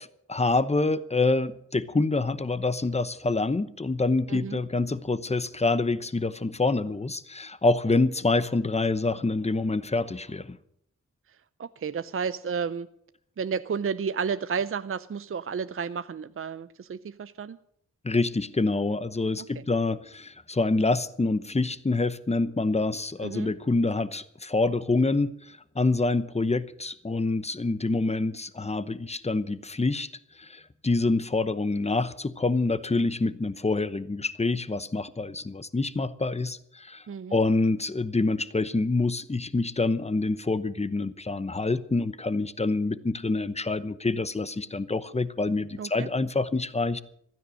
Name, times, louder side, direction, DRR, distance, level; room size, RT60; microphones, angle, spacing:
voice 1, 0.0-10.6 18.0-30.1 30.4-37.0 37.3-47.0, left 3 dB, 20° left, 15 dB, 0.9 m, -26 dB
voice 2, 4.3-4.6 11.6-12.9 13.4-17.6 19.6-19.7 23.2-23.5 37.1-37.4 45.8-46.1, right 6 dB, 45° right, 13 dB, 0.6 m, -32 dB
15.5 x 13.0 x 6.4 m, 0.70 s
cardioid pair, 70°, 31 cm